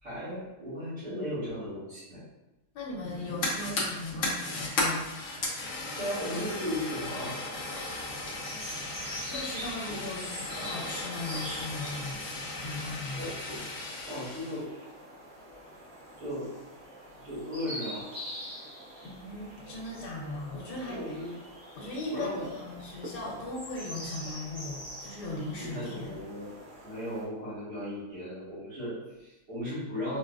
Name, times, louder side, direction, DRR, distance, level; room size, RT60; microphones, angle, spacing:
voice 1, 0.0-2.2 6.0-7.4 13.1-13.4 14.1-14.7 16.2-16.5 17.2-18.2 20.8-21.3 22.1-22.5 25.6-26.5 26.8-30.2, equal, 75° right, -13 dB, 2.1 m, -36 dB
voice 2, 2.7-5.1 8.4-9.0 9.3-12.2 12.6-13.2 19.0-21.2 21.7-26.1, left 2 dB, 90° left, -3 dB, 1.3 m, -38 dB
Fire, 3.0-14.6, left 2 dB, 60° left, 1.0 m, -35 dB
sound 1, 7.4-27.2, equal, 25° right, 0.6 m, -45 dB
4.8 x 2.3 x 2.4 m, 1.0 s
omnidirectional pair, 1.7 m